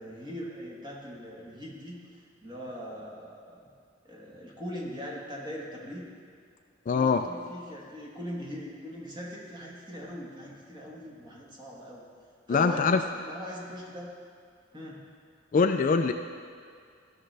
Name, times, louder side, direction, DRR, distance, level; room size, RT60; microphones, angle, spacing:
voice 1, 0.0-2.0 2.4-3.6 4.0-6.1 6.9-12.0 12.5-14.1 14.7-15.0, equal, 20° right, -3 dB, 1.4 m, -40 dB
voice 2, 6.9-7.3 12.5-13.0 15.5-16.1, left 5 dB, 40° left, 7 dB, 0.3 m, -23 dB
13.5 x 6.4 x 3.3 m, 2.1 s
head